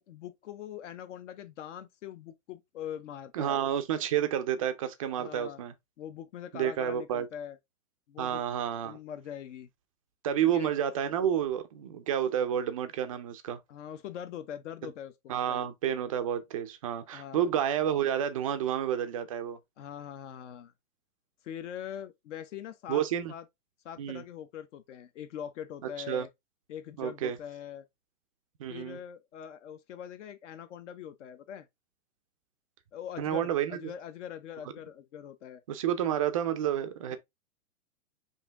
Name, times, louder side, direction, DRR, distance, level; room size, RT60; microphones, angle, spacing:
voice 1, 0.0-3.6 5.2-5.6 6.0-7.6 8.1-8.4 8.8-9.7 10.4-10.7 13.7-15.7 17.1-17.5 19.8-20.7 21.4-23.0 23.3-23.4 23.8-26.3 26.7-27.9 28.7-31.7 32.9-35.6 37.1-37.2, left 9 dB, 55° left, 0.8 m, -42 dB
voice 2, 3.3-5.7 6.5-7.3 8.2-9.0 10.2-13.6 15.3-19.6 22.9-23.3 24.0-24.2 26.1-26.3 27.0-27.4 28.6-29.0 33.2-33.8 35.7-37.2, right 10 dB, 25° right, 0.4 m, -30 dB
5.6 x 2.7 x 3.5 m
hypercardioid pair, 155°, 43 cm